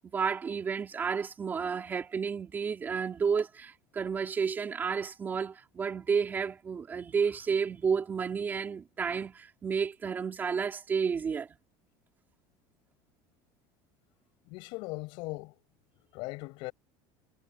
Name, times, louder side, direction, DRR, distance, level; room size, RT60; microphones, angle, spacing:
voice 1, 0.0-11.5, right 6 dB, 20° right, 4.2 m, -31 dB
voice 2, 14.5-15.6 16.1-16.7, left 24 dB, 55° left, 6.4 m, -39 dB
cardioid pair, 175°, 10 cm